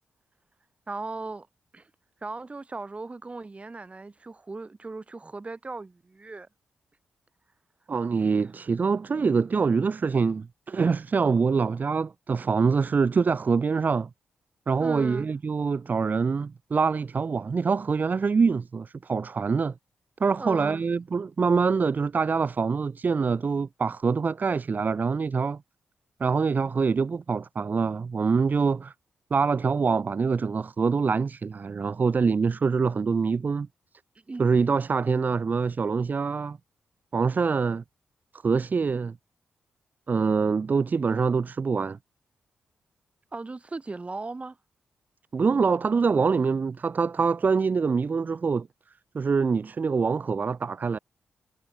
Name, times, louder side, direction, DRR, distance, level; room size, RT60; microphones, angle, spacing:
voice 1, 0.9-1.5 1.7-1.9 2.2-6.5 14.8-15.3 20.4-20.8 34.3-34.4 43.3-44.6, right 3 dB, 35° right, 6.5 m, -37 dB
voice 2, 7.9-14.1 14.7-19.7 20.2-25.6 26.2-28.9 29.3-33.7 34.4-36.6 37.1-37.8 38.4-39.2 40.1-42.0 45.3-48.7 49.1-51.0, right 5 dB, 50° right, 1.7 m, -25 dB
supercardioid pair, 40°, 4 cm